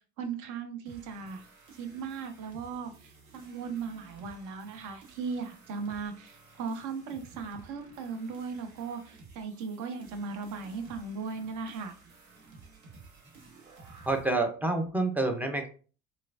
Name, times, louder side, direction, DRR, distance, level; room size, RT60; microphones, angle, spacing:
voice 1, 0.2-1.4 1.8-11.9, right 5 dB, 45° right, 6 dB, 0.6 m, -37 dB
sound 1, 0.9-14.4, right 4 dB, 80° right, 0.7 m, -54 dB
voice 2, 14.0-15.7, right 2 dB, 5° right, 4 dB, 0.4 m, -28 dB
3.0 x 2.3 x 2.4 m, 0.37 s
figure-of-eight pair, 55°, 41 cm